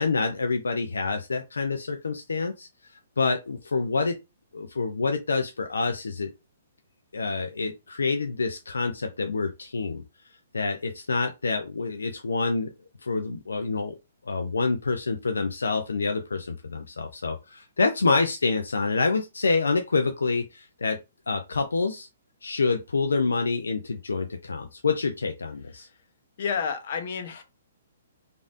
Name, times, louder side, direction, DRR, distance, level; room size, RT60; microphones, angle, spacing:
voice 1, 0.0-2.7 3.2-4.2 4.5-6.3 7.1-10.0 10.5-12.7 13.0-14.0 14.3-21.0 21.3-22.1 22.4-25.9, left 4 dB, 90° left, 0.4 m, -27 dB
voice 2, 26.4-27.4, left 6 dB, 55° left, 0.8 m, -30 dB
3.2 x 2.5 x 2.5 m
hypercardioid pair, 135°, 0 cm